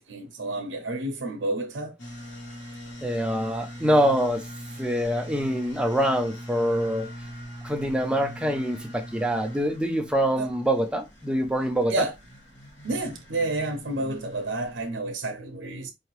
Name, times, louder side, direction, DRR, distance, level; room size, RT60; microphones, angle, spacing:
voice 1, 0.0-2.0 10.4-10.5 11.9-12.1 12.8-15.9, right 2 dB, 75° right, 0.7 m, -30 dB
sound 1, 2.0-14.9, equal, 75° left, 1.5 m, -42 dB
voice 2, 3.0-4.5 4.8-7.1 7.6-12.1, equal, 5° right, 0.5 m, -25 dB
4.6 x 2.8 x 3.1 m
head